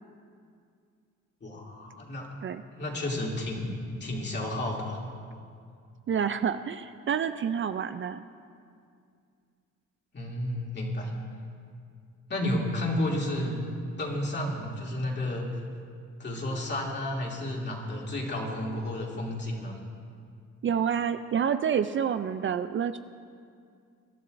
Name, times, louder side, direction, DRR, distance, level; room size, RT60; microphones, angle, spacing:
voice 1, 1.4-2.3 2.7-3.7 4.0-5.0 10.1-11.1 12.3-13.6 14.0-15.5 16.2-19.7, left 1 dB, 35° left, -2 dB, 2.8 m, -31 dB
voice 2, 6.1-8.2 20.6-23.0, right 8 dB, 40° right, 10 dB, 0.4 m, -28 dB
24.0 x 11.5 x 2.6 m, 2.3 s
cardioid pair, 90°, 30 cm